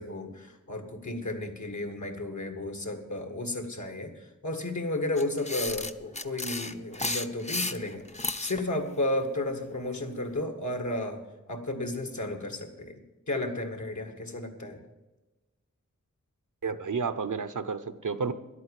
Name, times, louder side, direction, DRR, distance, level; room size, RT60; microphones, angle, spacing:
voice 1, 0.0-8.0 8.4-11.2 11.5-13.0 13.3-14.8, left 1 dB, 65° left, 4 dB, 1.9 m, -33 dB
sound 1, 5.2-8.6, left 2 dB, 20° left, 0.7 m, -33 dB
voice 2, 16.6-18.3, right 5 dB, 75° right, 11 dB, 0.8 m, -31 dB
11.5 x 8.6 x 8.3 m, 1.1 s
wide cardioid pair, 55°, 31 cm